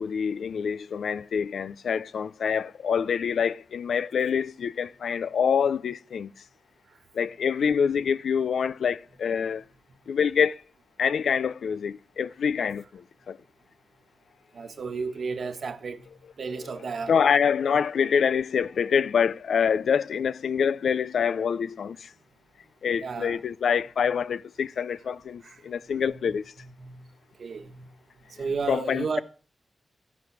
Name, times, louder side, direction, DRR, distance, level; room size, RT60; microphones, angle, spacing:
voice 1, 0.0-6.3 7.1-9.6 10.1-10.6 11.0-13.0 13.3-13.4 17.1-22.1 22.8-26.5 28.7-29.2, left 7 dB, 90° left, 0.6 m, -26 dB
voice 2, 14.5-16.1 16.4-17.1 23.0-23.4 25.4-25.6 26.0-26.2 26.6-27.0 27.4-27.9 28.4-29.2, right 5 dB, 75° right, 1.5 m, -33 dB
14.0 x 11.0 x 6.1 m
cardioid pair, 65°, 0 cm